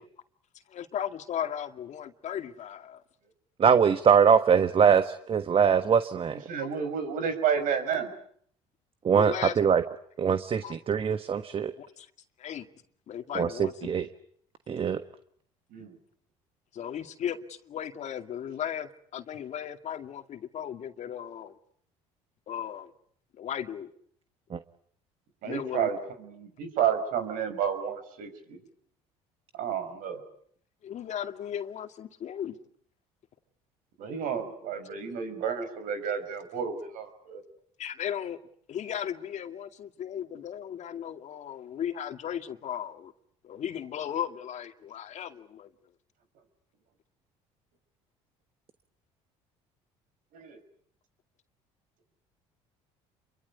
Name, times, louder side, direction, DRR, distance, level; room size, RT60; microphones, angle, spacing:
voice 1, 0.7-3.0 6.6-6.7 9.1-9.6 10.6-10.8 11.8-12.1 12.4-12.7 13.1-13.9 16.7-21.5 22.5-22.9 23.3-23.9 25.4-25.9 30.8-32.6 37.8-38.4 38.7-43.1 43.4-45.7, left 9 dB, 55° left, 2.3 m, -36 dB
voice 2, 3.6-6.4 9.0-9.8 10.2-11.7 13.3-14.1 14.7-15.0 24.5-24.6, right 7 dB, 40° right, 1.4 m, -22 dB
voice 3, 6.5-8.1 15.7-15.9 25.4-28.6 29.5-30.2 34.0-37.4 50.3-50.6, right 7 dB, 70° right, 5.6 m, -31 dB
28.5 x 23.5 x 8.3 m
supercardioid pair, 75°, 15 cm